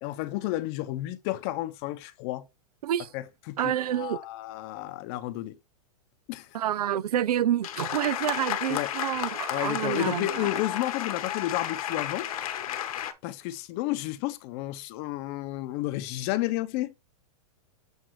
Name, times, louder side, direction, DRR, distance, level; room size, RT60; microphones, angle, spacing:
voice 1, 0.0-2.5 3.1-5.6 6.3-6.6 8.7-8.9 9.5-12.3 13.2-16.9, left 16 dB, 40° left, 0.8 m, -32 dB
voice 2, 3.6-4.2 6.5-10.5, right 11 dB, 75° right, 0.6 m, -28 dB
sound 1, 7.6-13.1, left 11 dB, 65° left, 1.2 m, -32 dB
7.9 x 2.7 x 4.7 m
hypercardioid pair, 135°, 20 cm